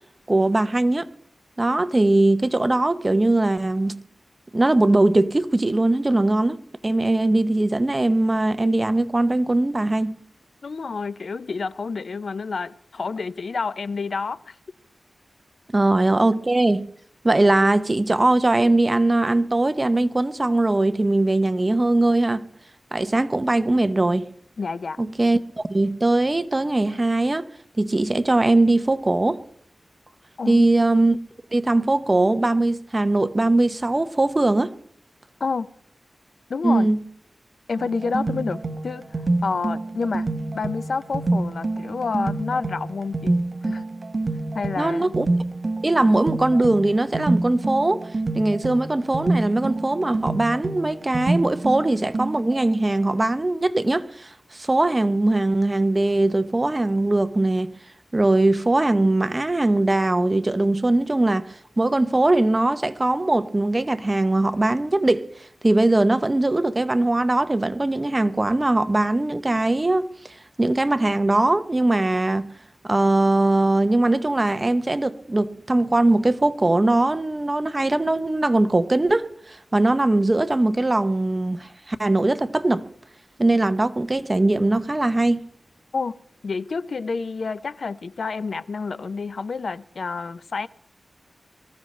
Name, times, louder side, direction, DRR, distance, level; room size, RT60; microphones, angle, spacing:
voice 1, 0.3-1.1 1.6-4.0 4.5-10.2 15.7-16.9 17.2-22.4 22.9-24.3 25.0-25.4 25.7-27.5 27.8-29.4 30.5-31.2 31.5-34.7 36.6-37.0 44.8-45.3 45.8-48.1 48.3-57.7 58.1-65.2 65.6-70.3 70.6-72.5 72.8-82.8 83.4-85.4, right 2 dB, 25° right, 0.7 m, -20 dB
voice 2, 10.6-14.5 24.6-25.0 30.4-30.7 35.4-35.7 36.5-36.9 37.7-39.0 39.4-40.3 40.5-43.4 43.6-43.9 44.5-45.1 85.9-86.1 86.4-90.7, left 4 dB, 70° left, 0.5 m, -29 dB
sound 1, 37.8-52.6, right 2 dB, 45° right, 1.1 m, -27 dB
22.5 x 14.5 x 3.2 m
wide cardioid pair, 110°, 0 cm